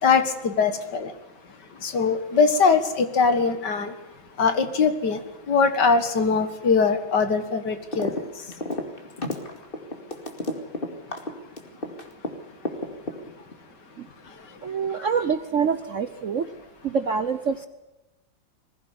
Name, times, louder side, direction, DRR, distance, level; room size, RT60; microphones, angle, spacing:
voice 1, 0.0-1.1 1.8-3.9 4.4-5.2 5.5-8.1, left 5 dB, 60° left, 10 dB, 2.2 m, -21 dB
sound 1, 7.9-8.2 8.5-12.3 12.7-13.5, left 1 dB, 25° left, 2.5 m, -30 dB
voice 2, 14.6-16.5 16.8-17.7, right 6 dB, 55° right, 11 dB, 1.0 m, -26 dB
21.0 x 15.5 x 9.7 m, 1.0 s
omnidirectional pair, 2.1 m